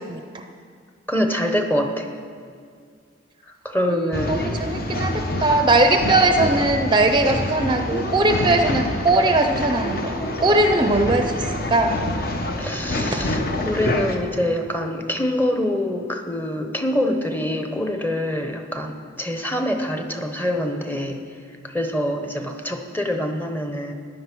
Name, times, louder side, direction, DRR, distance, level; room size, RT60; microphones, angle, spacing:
voice 1, 1.1-2.1 3.6-4.4 12.6-21.2 21.6-23.9, left 1 dB, 10° left, 5 dB, 0.9 m, -25 dB
voice 2, 3.9-10.1 10.4-12.0 13.1-13.2, right 2 dB, 25° right, 6 dB, 0.6 m, -20 dB
Male speech man speaking / Chatter / Rattle, 4.1-14.2, left 1 dB, 50° left, 1.1 m, -26 dB
14.5 x 10.0 x 6.1 m, 2.1 s
head